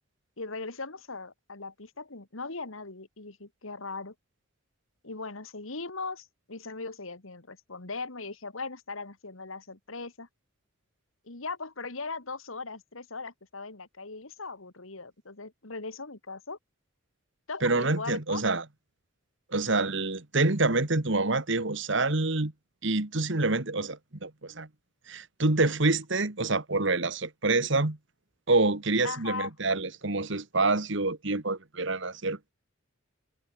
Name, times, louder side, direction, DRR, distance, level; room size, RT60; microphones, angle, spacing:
voice 1, 0.4-4.1 5.0-10.3 11.2-16.6 17.5-18.4 29.0-29.5, left 3 dB, 70° left, 2.1 m, -39 dB
voice 2, 17.6-18.6 19.5-22.5 22.8-24.7 25.1-28.0 28.5-32.5, right 3 dB, 60° right, 1.7 m, -27 dB
head